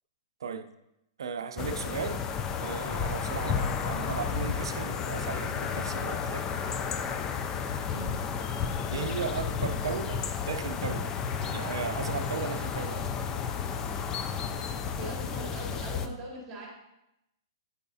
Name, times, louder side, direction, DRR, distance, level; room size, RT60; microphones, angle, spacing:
voice 1, 0.4-0.7 1.2-2.3 2.6-6.5 8.9-11.2 11.5-13.1, right 6 dB, 85° right, 8 dB, 0.5 m, -36 dB
sound 1, 1.6-16.1, left 6 dB, 20° left, 0.4 m, -32 dB
voice 2, 15.0-16.7, right 1 dB, 10° right, -3 dB, 2.0 m, -40 dB
8.3 x 4.7 x 2.7 m, 0.87 s
hypercardioid pair, 145°, 2 cm